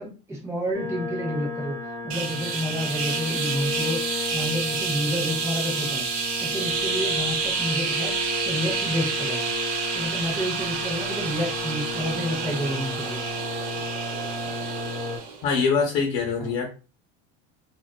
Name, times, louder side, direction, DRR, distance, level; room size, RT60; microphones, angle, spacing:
voice 1, 0.0-4.0 4.3-6.1 6.4-8.2 8.4-9.5 9.9-13.2 16.4-16.5, equal, 10° right, -3 dB, 0.7 m, -30 dB
sound 1, 0.7-15.2, left 3 dB, 45° left, 0.9 m, -34 dB
sound 2, 2.1-15.4, right 5 dB, 60° right, 0.7 m, -29 dB
voice 2, 15.4-16.7, left 5 dB, 80° left, 0 dB, 0.8 m, -23 dB
2.4 x 2.2 x 2.3 m, 0.35 s
cardioid pair, 140°, 30 cm